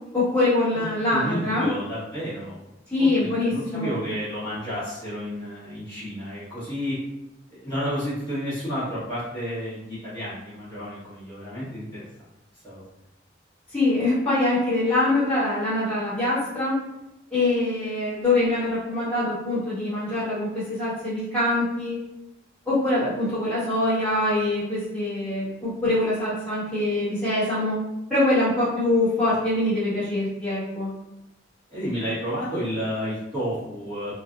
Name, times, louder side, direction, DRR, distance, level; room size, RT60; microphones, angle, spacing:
voice 1, 0.1-1.7 2.9-4.0 13.7-16.8 17.3-22.0 22.6-27.8 28.1-30.9, left 2 dB, 5° left, -14 dB, 1.3 m, -24 dB
voice 2, 0.7-2.6 3.0-7.0 7.5-12.0 12.6-12.8 17.8-17.9 31.7-34.1, equal, 20° left, -14 dB, 1.2 m, -31 dB
2.7 x 2.4 x 2.4 m, 0.90 s
head